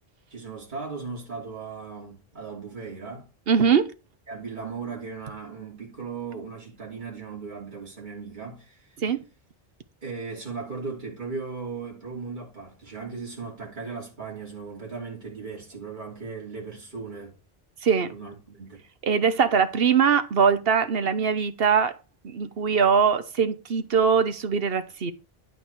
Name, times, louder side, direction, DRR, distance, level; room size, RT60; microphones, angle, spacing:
voice 1, 0.3-3.3 4.3-8.9 10.0-17.4 18.1-18.8, right 4 dB, 50° right, 3.1 m, -37 dB
voice 2, 3.5-3.9 9.0-9.2 17.8-18.1 19.0-21.9 22.2-25.1, right 6 dB, 70° right, 1.2 m, -22 dB
11.0 x 5.2 x 4.6 m
omnidirectional pair, 1.0 m